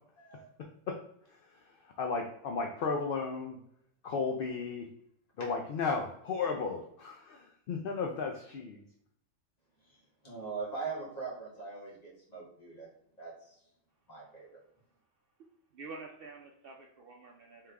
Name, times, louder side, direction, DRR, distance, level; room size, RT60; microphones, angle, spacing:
voice 1, 0.2-0.5 9.8-10.0 10.2-12.9 13.2-13.6 14.1-14.6, right 4 dB, 30° left, -6 dB, 1.7 m, -41 dB
voice 2, 2.0-3.6 4.0-4.9 5.4-8.8, left 4 dB, 60° left, 2 dB, 0.6 m, -34 dB
voice 3, 15.7-17.7, right 3 dB, 60° right, 0 dB, 0.6 m, -48 dB
3.6 x 3.3 x 3.3 m, 0.74 s
omnidirectional pair, 1.3 m